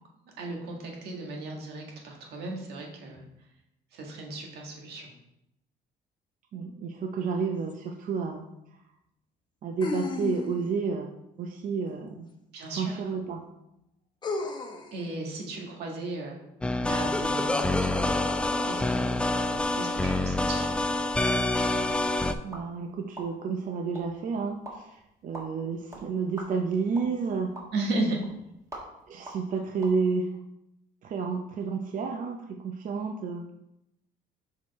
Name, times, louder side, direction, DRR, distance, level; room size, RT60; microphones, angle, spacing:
voice 1, 0.4-3.2 3.9-5.1 12.5-13.0 14.9-16.4 16.8-18.1 18.6-19.3 19.7-20.8 27.7-28.2, right 2 dB, 75° right, 0 dB, 1.7 m, -35 dB
voice 2, 6.5-8.4 9.6-12.3 12.7-13.4 22.4-27.5 29.1-30.3 31.0-33.4, right 5 dB, 50° right, 3 dB, 0.6 m, -31 dB
sound 1, 7.7-7.8 9.8-10.8 12.6-12.7 14.2-14.9, left 3 dB, 25° left, 0.9 m, -33 dB
sound 2, 16.6-22.3, left 2 dB, 5° left, 0.3 m, -26 dB
sound 3, 17.8-30.0, right 1 dB, 20° right, 1.7 m, -48 dB
6.2 x 4.6 x 4.2 m, 0.86 s
cardioid pair, 110°, 17 cm